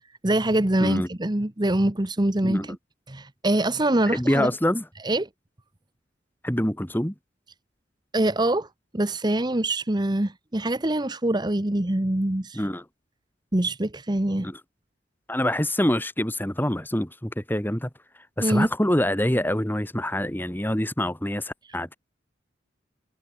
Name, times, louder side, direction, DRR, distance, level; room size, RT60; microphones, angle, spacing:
voice 1, 0.2-2.8 3.1-4.5 5.0-5.3 8.1-8.7 8.9-12.6 13.5-14.5 18.4-18.7, right 1 dB, 25° right, 1.1 m, -24 dB
voice 2, 4.1-4.8 6.4-7.1 12.5-12.8 14.4-14.6 15.3-17.9 18.4-22.0, left 1 dB, 10° left, 2.6 m, -25 dB
head